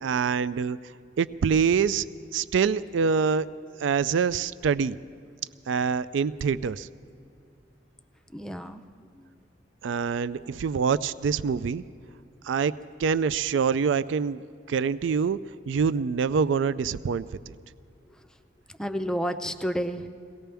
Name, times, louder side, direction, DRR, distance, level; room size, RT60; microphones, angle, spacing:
voice 1, 0.0-0.8 1.2-2.0 2.3-3.5 3.8-5.0 5.7-6.9 9.8-11.8 12.4-12.7 13.0-14.4 14.7-15.4 15.7-17.5, right 6 dB, 70° right, 16 dB, 0.3 m, -25 dB
voice 2, 8.3-8.9 9.1-9.4 18.7-20.1, equal, 5° left, 8 dB, 0.5 m, -31 dB
23.0 x 18.0 x 3.4 m, 2.4 s
head